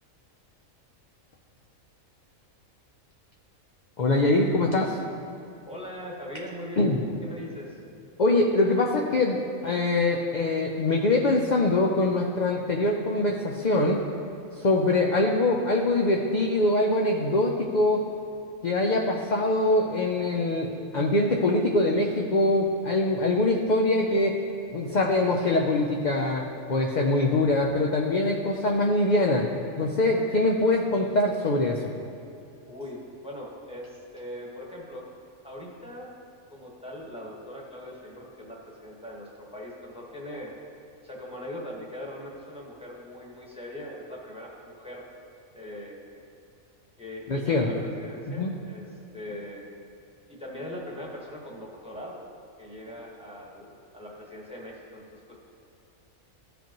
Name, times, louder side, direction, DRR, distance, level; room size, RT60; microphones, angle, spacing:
voice 1, 4.0-5.0 6.8-7.0 8.2-14.0 14.5-18.0 18.6-24.3 24.7-29.5 29.8-31.8 47.3-47.7 48.3-48.5, left 2 dB, 50° left, 0 dB, 0.5 m, -23 dB
voice 2, 5.6-7.8 32.7-35.1 35.4-36.1 36.5-40.5 41.0-45.1 45.5-46.0 47.0-48.8 49.1-49.7 50.3-52.2 52.6-55.3, left 1 dB, 5° right, -3 dB, 1.3 m, -40 dB
14.5 x 5.1 x 3.0 m, 2.8 s
omnidirectional pair, 1.4 m